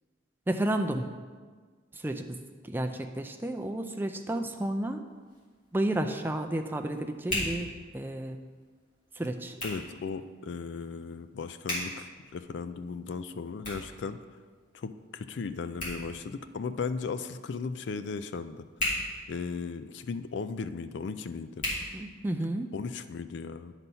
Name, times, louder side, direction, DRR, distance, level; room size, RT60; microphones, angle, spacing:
voice 1, 0.5-1.1 1.9-2.4 2.7-5.0 5.7-8.4 9.1-9.6 21.9-22.7, right 1 dB, 10° right, 5 dB, 0.4 m, -31 dB
Hands, 5.0-22.7, left 1 dB, 40° left, 2.7 m, -41 dB
voice 2, 9.6-14.2 14.7-18.6 19.3-21.6 22.7-23.7, left 5 dB, 60° left, 11 dB, 0.4 m, -36 dB
10.5 x 4.1 x 5.5 m, 1.5 s
head